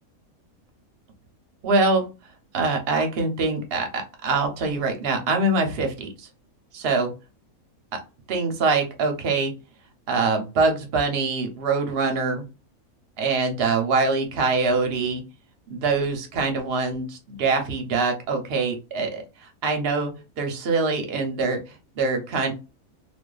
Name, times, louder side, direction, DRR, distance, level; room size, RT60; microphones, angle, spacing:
voice 1, 1.6-2.1 2.5-6.3 6.7-7.1 7.9-8.0 8.3-9.5 10.1-12.4 13.2-15.2 15.7-20.1 20.4-22.5, right 3 dB, 55° right, 4 dB, 0.7 m, -24 dB
2.4 x 2.4 x 2.3 m, 0.30 s
omnidirectional pair, 1.5 m